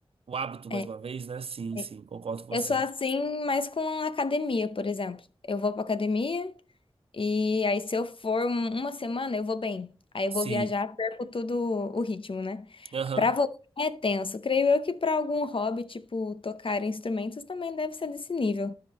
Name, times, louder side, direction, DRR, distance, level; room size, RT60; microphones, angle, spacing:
voice 1, 0.3-2.8 10.4-10.7 12.9-13.3, right 5 dB, 75° right, 0.4 m, -35 dB
voice 2, 2.5-5.2 5.5-6.5 7.1-13.5 13.8-18.7, left 3 dB, 65° left, 0.7 m, -29 dB
15.0 x 5.1 x 3.0 m
wide cardioid pair, 55°, 10 cm